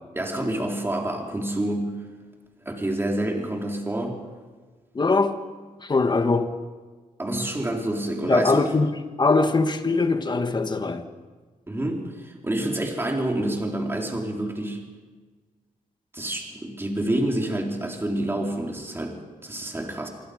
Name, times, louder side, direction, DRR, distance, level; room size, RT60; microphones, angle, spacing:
voice 1, 0.1-1.9 2.7-4.2 7.2-8.7 11.7-14.8 16.1-20.1, right 1 dB, 15° right, 1 dB, 3.9 m, -28 dB
voice 2, 4.9-5.4 5.8-6.5 8.2-11.1, left 3 dB, 30° left, 8 dB, 1.5 m, -22 dB
26.0 x 24.0 x 5.2 m, 1.4 s
wide cardioid pair, 140°, 15 cm